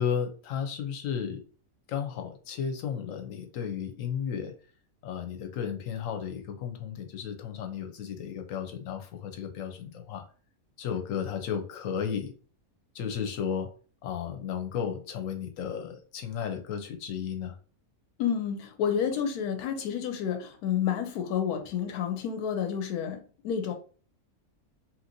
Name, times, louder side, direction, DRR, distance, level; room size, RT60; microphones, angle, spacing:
voice 1, 0.0-1.4 1.9-4.5 5.0-10.2 10.8-12.3 12.9-13.7 14.0-17.6, left 7 dB, 65° left, 0.9 m, -33 dB
voice 2, 18.2-23.7, left 8 dB, 90° left, 1.1 m, -30 dB
2.9 x 2.7 x 2.6 m
omnidirectional pair, 1.6 m